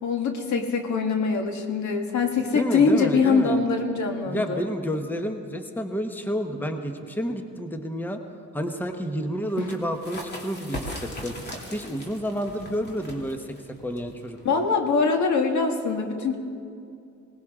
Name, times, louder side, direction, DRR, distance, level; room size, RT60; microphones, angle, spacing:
voice 1, 0.0-4.6 9.6-9.7 14.4-16.4, left 4 dB, 70° left, 4 dB, 1.7 m, -23 dB
voice 2, 2.5-3.6 4.3-8.2 8.5-11.3 11.7-14.6, equal, 5° left, 5 dB, 1.1 m, -30 dB
sound 1, 9.5-14.8, left 1 dB, 35° left, 2.7 m, -39 dB
20.0 x 18.5 x 3.7 m, 2.5 s
cardioid pair, 90°, 30 cm